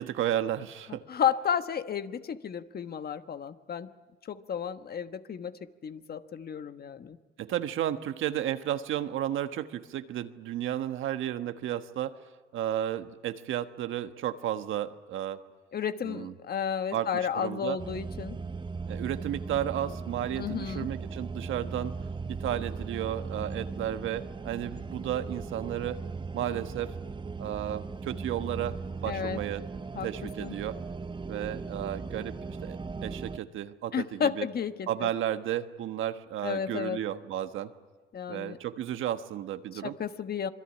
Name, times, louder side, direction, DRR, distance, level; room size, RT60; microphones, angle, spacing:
voice 1, 0.0-1.0 7.4-12.2 12.5-15.4 16.0-16.3 16.9-17.8 18.9-21.9 22.3-26.0 26.3-27.0 27.4-28.8 29.0-29.6 30.0-30.8 31.3-34.5 34.9-37.7 38.3-40.0, right 11 dB, 80° right, 9 dB, 1.3 m, -33 dB
voice 2, 0.9-3.9 4.2-7.2 15.7-18.4 20.4-20.9 29.1-29.4 29.9-30.1 30.4-30.5 33.9-35.1 36.4-37.0 38.1-38.6 39.7-40.5, left 8 dB, 50° left, 10 dB, 1.3 m, -32 dB
sound 1, 17.8-33.4, right 4 dB, 25° right, 1.0 m, -38 dB
26.5 x 22.0 x 9.9 m, 1.3 s
cardioid pair, 90°, 20 cm